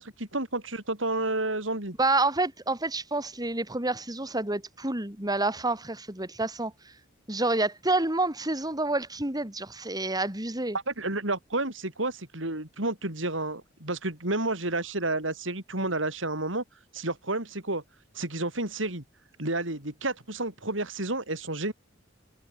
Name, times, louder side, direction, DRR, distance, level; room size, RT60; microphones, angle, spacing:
voice 1, 0.0-2.0 10.9-16.6 16.9-17.8 18.1-19.0 19.4-21.7, right 2 dB, 80° right, 6.4 m, -30 dB
voice 2, 2.0-6.9 7.3-10.8, right 2 dB, 20° right, 3.8 m, -28 dB
head